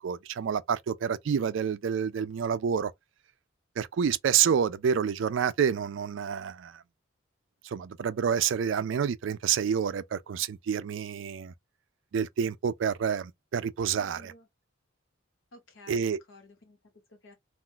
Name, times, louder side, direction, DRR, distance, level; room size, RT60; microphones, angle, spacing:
voice 1, 0.0-2.9 3.8-6.8 7.6-11.5 12.1-14.3 15.9-16.2, right 7 dB, 65° right, 0.3 m, -28 dB
voice 2, 13.9-14.5 15.5-17.3, left 2 dB, 70° left, 1.3 m, -53 dB
2.5 x 2.3 x 3.7 m
head